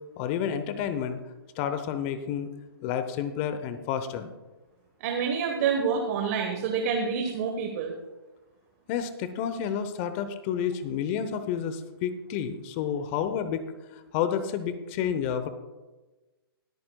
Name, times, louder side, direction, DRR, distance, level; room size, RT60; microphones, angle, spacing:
voice 1, 0.2-1.2 1.5-2.5 2.8-4.3 8.9-15.5, left 8 dB, 30° left, 10 dB, 0.8 m, -30 dB
voice 2, 5.0-7.9, right 6 dB, 40° right, 3 dB, 1.3 m, -27 dB
21.5 x 8.7 x 2.3 m, 1.2 s
hypercardioid pair, 140°, 13 cm